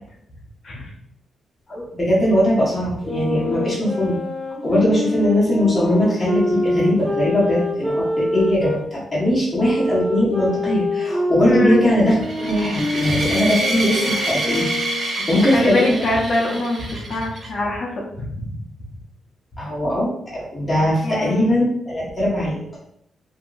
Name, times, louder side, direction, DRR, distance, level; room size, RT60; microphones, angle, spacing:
voice 1, 1.7-4.1 4.6-14.7 15.1-16.0 19.6-22.8, left 1 dB, 20° left, -8 dB, 1.3 m, -20 dB
sound 1, 3.0-8.8 9.5-15.2, left 1 dB, 15° right, 1.1 m, -25 dB
voice 2, 11.5-11.8 13.1-13.2 15.4-18.5 21.0-21.5, left 2 dB, 60° left, -3 dB, 0.8 m, -24 dB
sound 2, 12.2-17.5, right 2 dB, 50° right, 0.7 m, -27 dB
2.8 x 2.7 x 2.5 m, 0.72 s
cardioid pair, 85°, 0 cm